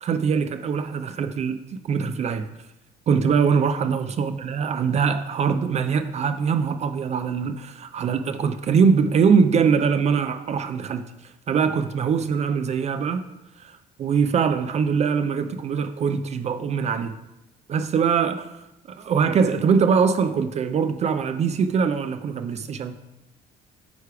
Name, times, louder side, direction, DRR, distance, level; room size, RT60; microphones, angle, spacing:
voice 1, 0.0-2.5 3.1-13.2 13.6-17.1 17.7-18.6 18.9-23.0, right 6 dB, 40° right, 0.4 m, -22 dB
9.3 x 3.3 x 4.7 m
cardioid pair, 110°, 17 cm